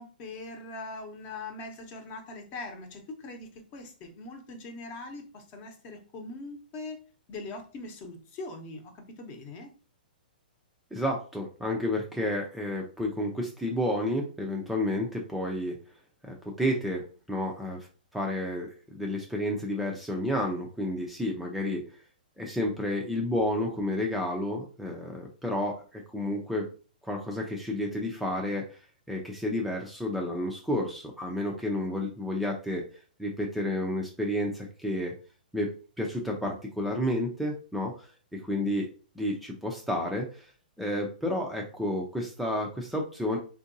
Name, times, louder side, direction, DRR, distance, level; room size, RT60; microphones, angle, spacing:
voice 1, 0.0-7.0 7.3-9.7, left 2 dB, 35° left, 4 dB, 0.9 m, -41 dB
voice 2, 10.9-15.8 16.2-17.9 18.1-21.8 22.4-26.7 27.0-28.8 29.1-32.8 33.2-35.1 35.5-38.9 39.2-40.5 40.8-43.4, left 1 dB, ahead, -1 dB, 0.5 m, -31 dB
3.6 x 2.6 x 2.6 m, 0.38 s
hypercardioid pair, 130°, 5 cm